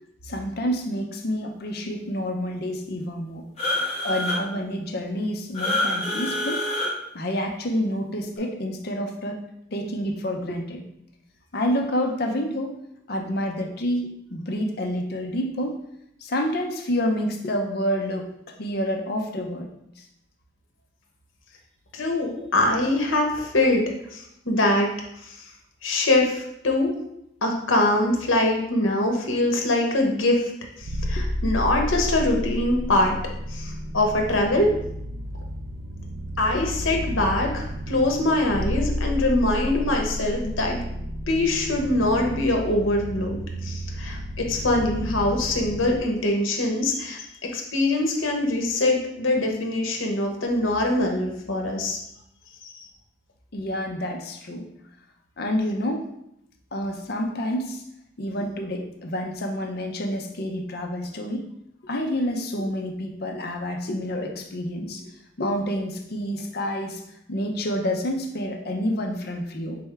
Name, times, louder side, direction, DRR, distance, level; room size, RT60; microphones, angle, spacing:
voice 1, 0.2-3.4 4.0-6.6 7.1-9.4 9.7-10.8 11.5-12.8 13.1-15.8 16.2-19.7 20.0-20.1 22.3-22.5 31.2-31.3 36.5-36.7 53.5-54.6 55.4-56.1 56.7-57.8 58.2-61.5 61.8-65.1 65.4-67.0 67.3-69.8, equal, 50° left, 3 dB, 0.6 m, -28 dB
sound 1, 3.6-4.4 5.5-6.9, left 1 dB, 30° left, 1.7 m, -26 dB
voice 2, 21.9-23.8 24.1-24.9 25.2-25.4 25.8-26.9 27.4-30.5 30.8-33.2 33.5-34.7 36.4-40.8 41.3-52.0 52.7-52.8, left 2 dB, 80° left, 1 dB, 0.9 m, -23 dB
sound 2, 30.8-46.0, equal, 50° right, 0.4 m, -31 dB
4.3 x 3.4 x 3.4 m, 0.77 s
head